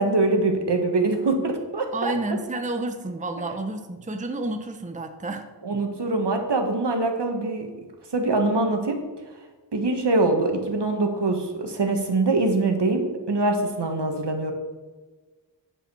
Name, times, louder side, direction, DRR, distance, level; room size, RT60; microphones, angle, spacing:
voice 1, 0.0-2.1 5.6-7.7 8.1-9.0 9.7-14.5, right 2 dB, 70° right, 4 dB, 1.5 m, -23 dB
voice 2, 1.9-5.5, right 2 dB, 20° right, 6 dB, 0.7 m, -30 dB
9.9 x 5.1 x 6.9 m, 1.3 s
wide cardioid pair, 85°, 43 cm